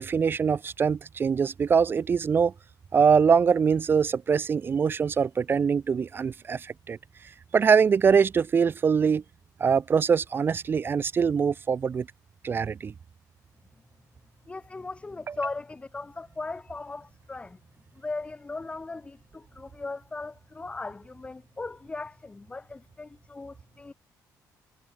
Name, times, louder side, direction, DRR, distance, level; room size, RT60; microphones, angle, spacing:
voice 1, 0.0-2.5 2.9-7.0 7.5-9.2 9.6-12.1 12.4-12.9, right 6 dB, 30° right, 0.5 m, -23 dB
voice 2, 14.5-17.6 18.0-23.9, left 3 dB, 15° left, 4.5 m, -38 dB
cardioid pair, 145°, 7 cm